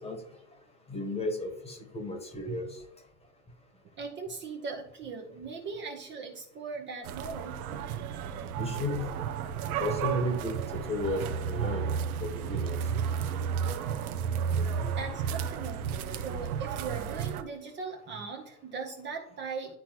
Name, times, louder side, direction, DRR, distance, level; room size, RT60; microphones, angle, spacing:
voice 1, 0.9-2.8 8.6-9.1 9.8-11.9 12.2-12.8 14.8-14.9, left 1 dB, 15° left, 5 dB, 1.3 m, -33 dB
voice 2, 4.0-7.6 14.9-15.9 16.2-19.8, right 5 dB, 25° right, 1 dB, 0.9 m, -39 dB
sound 1, 7.0-17.4, right 7 dB, 75° right, 0.9 m, -32 dB
11.5 x 4.1 x 2.9 m, 0.78 s
supercardioid pair, 130°, 44 cm